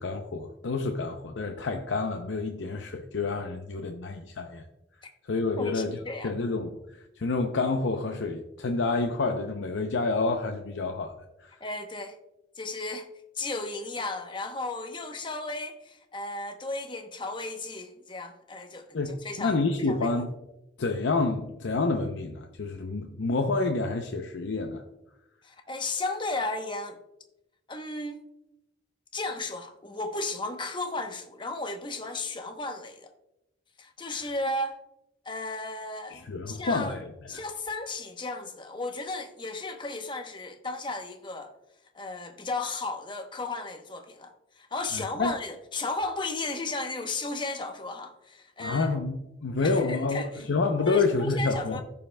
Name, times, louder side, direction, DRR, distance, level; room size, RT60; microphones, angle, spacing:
voice 1, 0.0-4.7 5.3-6.0 6.2-11.1 11.4-11.6 18.9-20.3 20.8-24.8 36.1-37.1 44.9-45.4 48.6-51.8, left 3 dB, 85° left, 0.6 m, -28 dB
voice 2, 5.6-6.3 11.6-12.2 12.6-13.1 13.4-19.6 19.9-20.2 25.4-27.0 27.7-28.2 29.1-33.1 33.8-34.8 35.2-37.0 37.3-41.5 41.9-48.9 49.6-50.4 50.8-51.8, left 2 dB, 25° left, 0.8 m, -34 dB
15.5 x 5.5 x 2.2 m
head